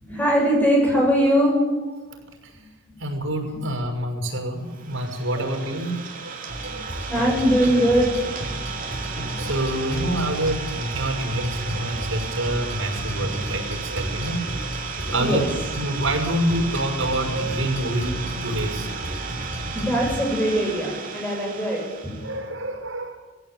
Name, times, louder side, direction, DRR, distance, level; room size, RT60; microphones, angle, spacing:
voice 1, 0.0-1.6 2.6-2.7 5.4-5.7 6.7-6.8 7.1-8.4 8.7-8.9 15.1-15.5 19.7-22.3, equal, 10° left, -2 dB, 7.4 m, -22 dB
voice 2, 3.0-7.1 9.4-14.7 15.1-15.4 15.8-19.2 22.2-23.2, right 1 dB, 90° right, 3 dB, 6.1 m, -27 dB
Idling, 4.7-22.4, right 5 dB, 45° right, 3.1 m, -34 dB
sound 1, 6.5-20.2, equal, 65° left, 6.5 m, -33 dB
20.0 x 16.0 x 9.0 m, 1.3 s
head